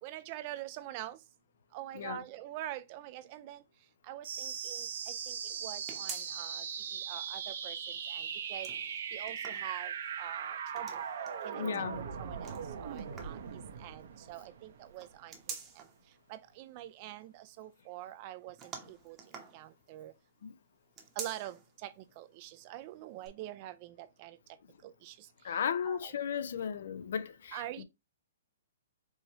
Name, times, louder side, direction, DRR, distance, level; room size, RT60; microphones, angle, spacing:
voice 1, 0.0-1.2 1.7-3.6 4.1-5.4 5.6-6.6 7.1-7.8 8.1-8.7 9.1-9.9 10.2-11.0 11.4-13.4 13.8-15.3 15.8-15.9 16.3-18.6 18.9-19.2 19.5-20.1 21.2-21.6 21.8-24.4 24.8-25.1 25.8-26.1 27.5-27.8, right 14 dB, 35° right, 0.4 m, -45 dB
sound 1, 4.2-15.3, right 7 dB, 60° right, 0.8 m, -39 dB
sound 2, 5.9-6.7 7.1-7.2 8.4-10.1 10.7-11.5 12.4-13.5 14.9-16.0 18.6-20.1 20.9-21.7 22.1-22.2 23.2-23.3, right 6 dB, 20° right, 0.9 m, -47 dB
voice 2, 11.5-12.0 20.4-20.5 25.4-27.8, left 7 dB, 65° left, 0.5 m, -35 dB
4.7 x 2.7 x 2.8 m
hypercardioid pair, 150°, 0 cm